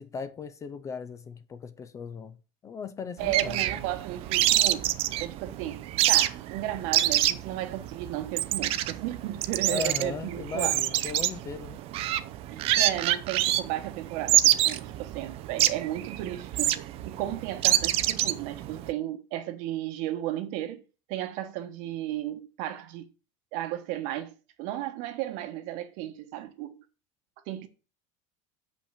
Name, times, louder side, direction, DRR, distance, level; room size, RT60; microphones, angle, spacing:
voice 1, 0.0-2.4 2.6-3.8 9.7-11.8, left 6 dB, 20° left, 0.5 m, -37 dB
sound 1, 3.2-18.9, right 14 dB, 40° right, 0.6 m, -27 dB
voice 2, 3.2-10.8 12.5-16.7 17.0-20.8 21.1-23.1 23.5-24.3 24.6-26.8 27.5-27.7, right 13 dB, 60° right, 1.2 m, -34 dB
7.2 x 5.5 x 6.4 m
cardioid pair, 165°, 15 cm